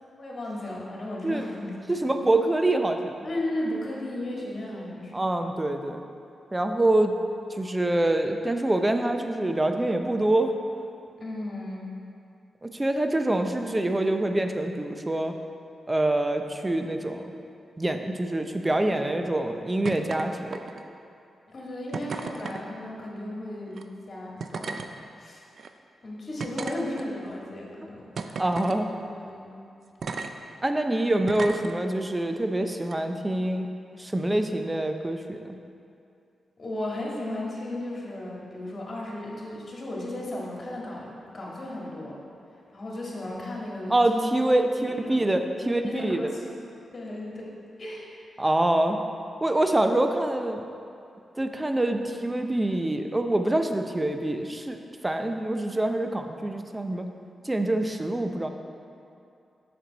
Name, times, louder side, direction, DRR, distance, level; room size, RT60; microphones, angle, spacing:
voice 1, 0.0-1.7 2.0-2.1 3.2-5.2 11.2-11.9 21.5-24.8 25.2-25.4 26.0-28.8 29.1-29.6 36.6-42.2 42.7-44.3 44.7-45.3 45.6-46.4 46.9-47.5 47.8-48.5, left 1 dB, 50° left, -4 dB, 1.8 m, -35 dB
voice 2, 1.9-3.1 5.1-6.0 6.5-7.1 7.6-10.5 12.6-15.3 15.9-17.3 17.8-20.6 28.4-28.9 30.6-33.7 34.0-35.5 43.9-46.3 48.4-49.0 49.4-50.6 51.4-54.8 55.0-57.1 57.4-58.5, right 1 dB, 20° right, 6 dB, 0.6 m, -25 dB
sound 1, 19.8-20.2 20.5-21.0 21.9-22.6 23.7-23.8 24.4-24.9 25.6-25.7 26.4-27.3 28.2-28.8 30.0-30.3 31.3-31.7 32.8-32.9, right 4 dB, 65° right, 0.4 m, -34 dB
6.5 x 6.2 x 4.1 m, 2.5 s
supercardioid pair, 45°, 0 cm